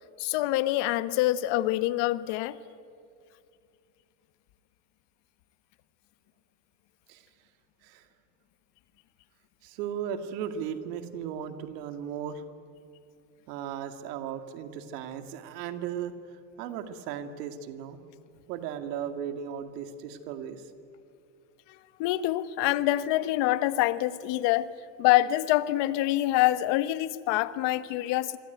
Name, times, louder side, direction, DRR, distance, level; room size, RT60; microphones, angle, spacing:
voice 1, 0.2-2.6 22.0-24.7 25.0-28.4, left 15 dB, 60° left, 14 dB, 1.3 m, -25 dB
voice 2, 9.6-12.4 13.5-16.1 16.6-18.0 18.5-20.6, right 8 dB, 80° right, 8 dB, 2.3 m, -36 dB
26.5 x 23.5 x 9.2 m, 2.5 s
supercardioid pair, 110°, 48 cm